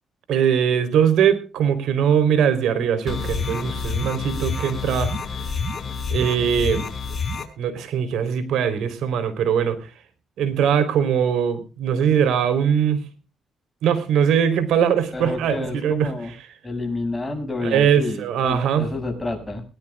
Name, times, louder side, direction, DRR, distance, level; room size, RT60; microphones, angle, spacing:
voice 1, 0.3-5.1 6.1-6.9 7.6-9.9 10.4-13.0 13.8-16.1 17.6-18.9, right 8 dB, 80° right, 11 dB, 3.8 m, -21 dB
sound 1, 3.1-7.4, left 4 dB, 40° left, 5.1 m, -28 dB
voice 2, 15.1-16.3 16.6-19.6, left 2 dB, 15° left, 4 dB, 6.9 m, -29 dB
21.5 x 18.5 x 2.4 m, 0.35 s
cardioid pair, 90°, 0 cm